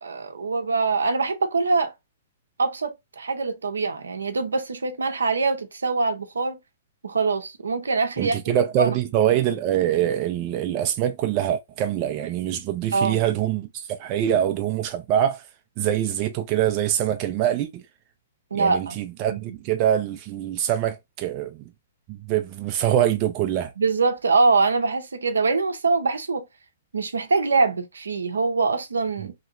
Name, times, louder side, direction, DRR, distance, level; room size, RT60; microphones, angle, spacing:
voice 1, 0.0-1.9 2.6-6.6 7.0-8.4 8.8-8.9 12.9-13.2 18.5-19.0 19.3-19.4 23.8-26.4 26.9-29.3, right 4 dB, 80° right, 0.7 m, -23 dB
voice 2, 8.2-15.4 15.8-17.8 18.5-21.6 22.1-23.7, right 11 dB, 35° right, 0.4 m, -24 dB
2.9 x 2.8 x 2.4 m
figure-of-eight pair, 120°, 0 cm